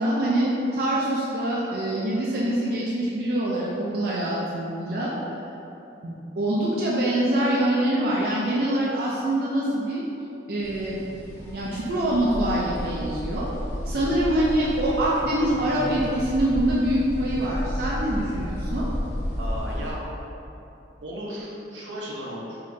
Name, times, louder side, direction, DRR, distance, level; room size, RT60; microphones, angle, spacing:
voice 1, 0.0-5.1 6.0-10.0 10.5-11.0 11.5-13.5 13.9-18.9, right 1 dB, 55° right, -6 dB, 0.5 m, -24 dB
sound 1, 10.6-19.9, equal, 40° left, 1.3 m, -32 dB
voice 2, 14.0-14.4 19.4-20.0 21.0-22.6, equal, 85° right, -5 dB, 0.8 m, -35 dB
5.1 x 2.8 x 2.7 m, 2.8 s
head